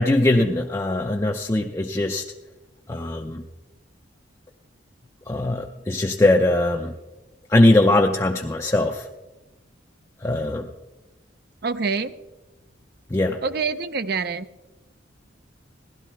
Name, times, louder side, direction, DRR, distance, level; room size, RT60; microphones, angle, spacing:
voice 1, 0.0-2.2 2.9-3.4 5.3-6.9 7.5-9.0 10.2-10.7 13.1-13.4, left 2 dB, 15° left, 1 dB, 0.5 m, -20 dB
voice 2, 11.6-12.1 13.4-14.5, right 4 dB, 55° right, 13 dB, 0.6 m, -26 dB
16.0 x 12.0 x 4.5 m, 1.1 s
head